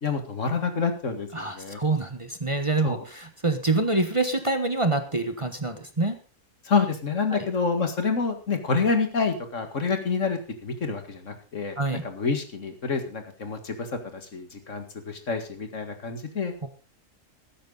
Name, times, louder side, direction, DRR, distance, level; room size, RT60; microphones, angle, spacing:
voice 1, 0.0-1.8 2.8-3.0 6.6-16.7, left 4 dB, 65° left, 7 dB, 2.4 m, -28 dB
voice 2, 1.3-6.2 7.3-7.4 11.8-12.0 16.6-16.7, right 2 dB, 25° right, 8 dB, 1.3 m, -26 dB
15.0 x 13.0 x 4.0 m, 0.34 s
omnidirectional pair, 1.4 m